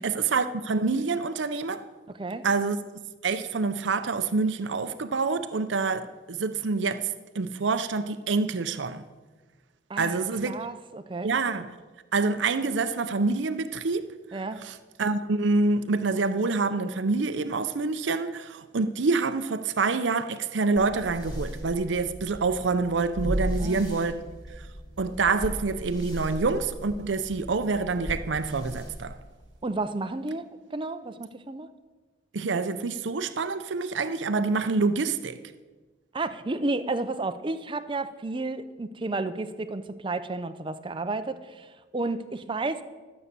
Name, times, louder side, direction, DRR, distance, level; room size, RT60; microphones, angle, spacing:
voice 1, 0.0-1.8 2.4-2.8 3.2-7.1 7.3-9.0 10.0-10.5 11.2-11.7 12.1-14.4 14.6-24.3 25.0-29.2 32.3-35.4, right 4 dB, 75° right, 0.6 m, -27 dB
voice 2, 2.1-2.5 9.9-10.2 10.4-11.3 14.3-14.7 23.6-24.1 29.6-31.7 36.1-42.8, right 2 dB, 25° right, 0.6 m, -32 dB
sound 1, 20.7-29.7, equal, 25° left, 2.4 m, -36 dB
12.5 x 7.4 x 6.7 m
head